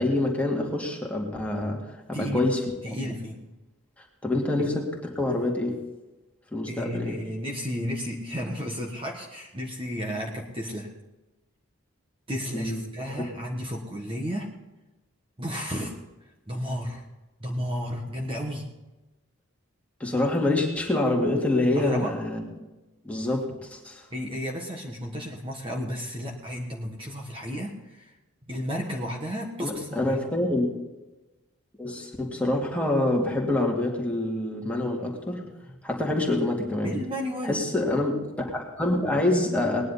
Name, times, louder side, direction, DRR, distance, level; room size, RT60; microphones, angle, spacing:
voice 1, 0.0-2.6 4.0-5.8 6.5-7.2 12.5-12.8 13.2-13.4 20.0-22.4 23.0-24.1 29.6-30.7 31.8-35.4 35.8-36.9 37.4-39.8, left 2 dB, 5° left, -1 dB, 2.3 m, -26 dB
voice 2, 2.1-2.5 2.8-3.5 4.6-4.7 6.7-10.9 12.3-14.5 15.4-16.0 16.5-17.0 17.4-18.7 21.7-22.2 24.1-28.1 28.5-30.2 36.8-37.6, equal, 25° right, 0 dB, 1.5 m, -33 dB
19.0 x 10.5 x 4.2 m, 1.1 s
head